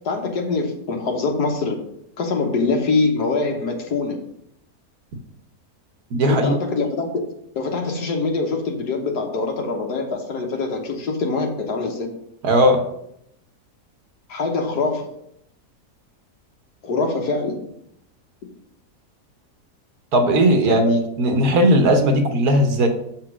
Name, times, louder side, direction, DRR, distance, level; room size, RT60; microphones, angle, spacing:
voice 1, 0.0-1.8 2.2-4.2 6.3-7.2 7.5-12.1 14.3-15.1 16.8-17.7 20.7-21.0, left 3 dB, 80° left, 2 dB, 1.7 m, -24 dB
voice 2, 6.1-6.6 12.4-12.8 20.1-22.9, right 1 dB, 70° right, 5 dB, 1.5 m, -17 dB
6.9 x 4.5 x 6.1 m, 0.75 s
omnidirectional pair, 1.7 m